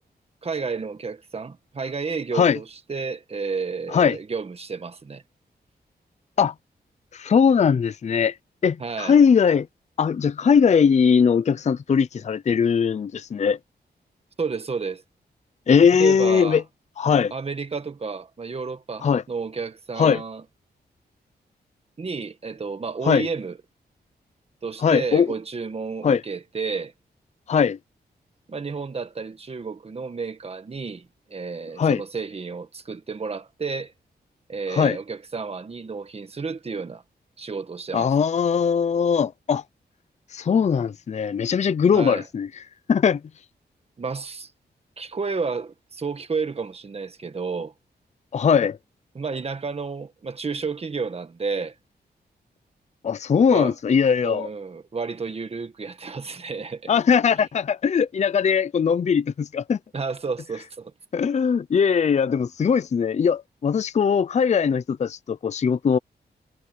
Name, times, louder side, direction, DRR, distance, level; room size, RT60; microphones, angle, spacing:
voice 1, 0.4-5.2 8.8-9.2 14.4-15.0 16.0-16.6 17.3-20.4 22.0-23.6 24.6-26.9 28.5-33.9 34.5-37.0 37.4-38.1 41.9-42.3 44.0-44.5 45.0-47.7 49.1-51.7 53.5-53.7 54.2-56.9 59.9-60.9, right 4 dB, 35° right, 1.6 m, -31 dB
voice 2, 7.1-8.4 8.6-9.7 10.0-13.6 15.7-16.6 17.0-17.3 19.0-19.2 20.0-20.2 23.0-23.3 24.8-25.3 26.0-26.2 27.5-27.8 31.8-32.0 34.7-35.0 37.9-39.6 40.3-42.5 42.9-43.2 48.3-48.8 53.0-54.5 56.9-59.8 61.1-66.0, left 6 dB, 40° left, 0.5 m, -20 dB
wide cardioid pair, 140°, 17 cm